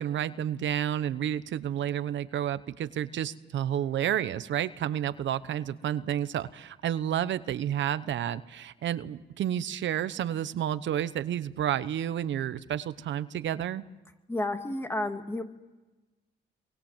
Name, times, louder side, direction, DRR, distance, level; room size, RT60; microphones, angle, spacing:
voice 1, 0.0-13.8, right 10 dB, 70° right, 13 dB, 1.1 m, -30 dB
voice 2, 14.3-15.4, left 1 dB, 10° left, 6 dB, 2.3 m, -31 dB
28.0 x 23.5 x 7.4 m, 1.1 s
cardioid pair, 90°, 20 cm